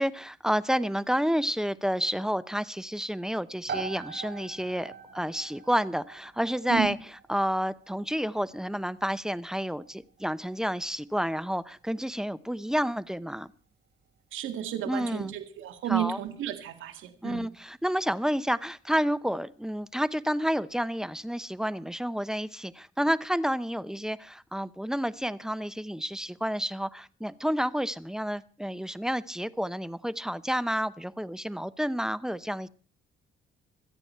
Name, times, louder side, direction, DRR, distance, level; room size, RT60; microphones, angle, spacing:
voice 1, 0.0-7.0 7.3-13.5 14.9-15.3 15.9-16.2 17.2-32.7, equal, 5° right, 16 dB, 0.7 m, -30 dB
sound 1, 3.7-18.2, right 6 dB, 60° right, 4.2 m, -46 dB
voice 2, 14.3-17.5, right 11 dB, 85° right, 6 dB, 2.1 m, -32 dB
26.5 x 8.9 x 4.5 m, 0.39 s
cardioid pair, 90°, 20 cm